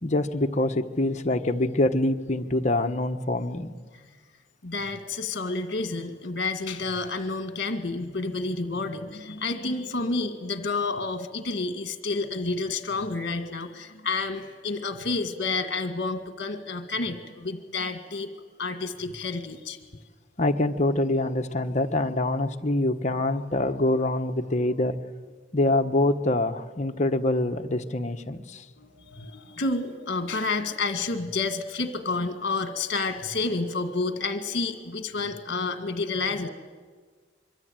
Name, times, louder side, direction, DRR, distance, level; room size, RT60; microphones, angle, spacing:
voice 1, 0.0-3.7 20.4-25.0 25.5-28.6, left 2 dB, 40° left, 6 dB, 1.2 m, -25 dB
voice 2, 4.6-18.3 18.6-19.8 28.8-36.5, left 3 dB, 55° left, 8 dB, 1.8 m, -30 dB
25.5 x 23.5 x 9.1 m, 1.5 s
head